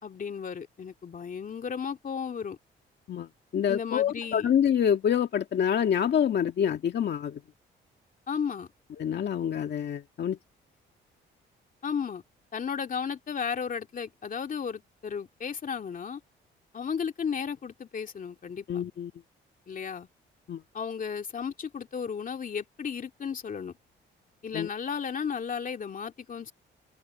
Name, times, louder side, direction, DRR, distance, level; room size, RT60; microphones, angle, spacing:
voice 1, 0.0-2.6 3.7-4.5 8.3-8.7 11.8-12.2 12.5-16.2 16.7-18.8 19.7-20.1 20.7-23.7 24.4-26.5, left 6 dB, 45° left, 2.5 m, -34 dB
voice 2, 3.1-7.4 9.0-10.4 18.7-19.1 20.5-20.6 24.5-24.7, left 8 dB, 60° left, 2.0 m, -26 dB
open air
cardioid pair, 90°, 20 cm